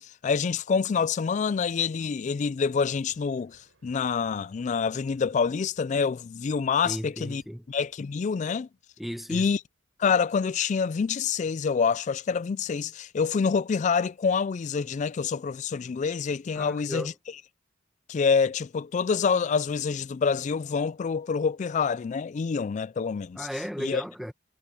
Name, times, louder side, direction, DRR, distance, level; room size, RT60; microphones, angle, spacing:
voice 1, 0.0-7.4 7.7-8.7 9.3-9.6 10.0-17.1 18.1-23.5 23.8-24.0, left 5 dB, 35° left, 0.3 m, -27 dB
Thunder, 3.0-12.3 12.6-13.9 15.4-15.5 16.3-16.5, right 1 dB, 70° right, 6.2 m, -67 dB
voice 2, 6.8-7.6 9.0-9.5 16.5-17.1 23.4-24.3, equal, ahead, 1.4 m, -35 dB
head